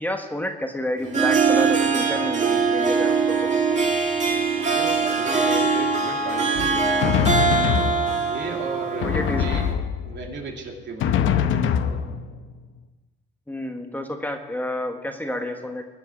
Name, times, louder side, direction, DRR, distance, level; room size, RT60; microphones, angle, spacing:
voice 1, 0.0-3.5 9.0-9.5 13.5-15.8, left 1 dB, 10° left, 4 dB, 1.4 m, -29 dB
Harp, 1.0-9.7, right 5 dB, 35° right, 2.7 m, -22 dB
voice 2, 4.7-7.5 8.2-9.8 10.1-11.2, right 3 dB, 65° right, 1 dB, 2.8 m, -34 dB
Drum, 6.6-8.4 9.0-10.3 11.0-12.5, left 8 dB, 80° left, 0.9 m, -23 dB
21.5 x 7.7 x 6.2 m, 1.2 s
cardioid pair, 90°, 20 cm